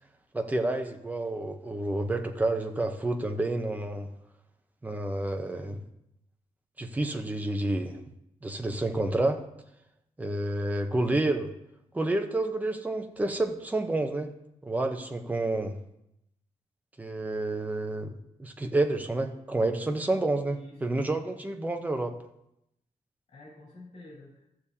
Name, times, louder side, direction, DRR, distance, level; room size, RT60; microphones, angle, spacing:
voice 1, 0.3-4.1 4.8-5.8 6.8-8.0 8.4-9.4 10.2-11.5 11.9-14.3 14.6-15.8 17.0-18.1 18.4-22.1, right 2 dB, 10° right, 5 dB, 0.7 m, -29 dB
voice 2, 20.4-21.0 23.3-24.5, left 2 dB, 60° left, -6 dB, 3.3 m, -49 dB
14.5 x 6.8 x 2.8 m, 0.81 s
wide cardioid pair, 165°, 13 cm